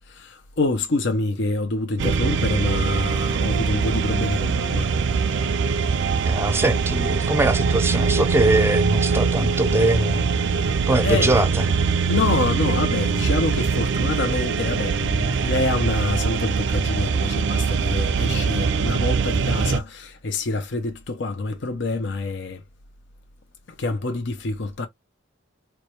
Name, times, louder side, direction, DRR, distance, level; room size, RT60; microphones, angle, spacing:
voice 1, 0.1-4.9 10.5-10.8 11.0-11.3 12.1-22.6 23.8-24.9, left 3 dB, 60° left, 0.7 m, -26 dB
sound 1, 2.0-19.8, right 5 dB, 65° right, 0.4 m, -22 dB
voice 2, 6.3-10.3 10.9-11.6, right 2 dB, 10° right, 0.5 m, -21 dB
4.6 x 2.2 x 3.1 m
head